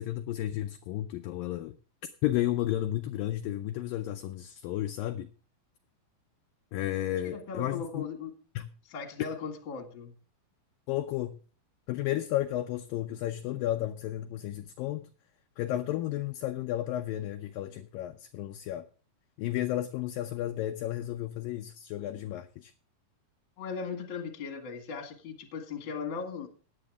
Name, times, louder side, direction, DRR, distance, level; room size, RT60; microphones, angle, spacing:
voice 1, 0.0-1.8 2.2-5.3 6.7-8.0 8.6-8.7 10.9-11.4 11.9-15.1 15.6-18.9 19.4-22.7, left 13 dB, 80° left, 2.2 m, -32 dB
voice 2, 7.2-8.3 8.9-10.1 23.6-26.5, left 5 dB, 40° left, 2.2 m, -38 dB
16.5 x 10.0 x 3.6 m
omnidirectional pair, 4.5 m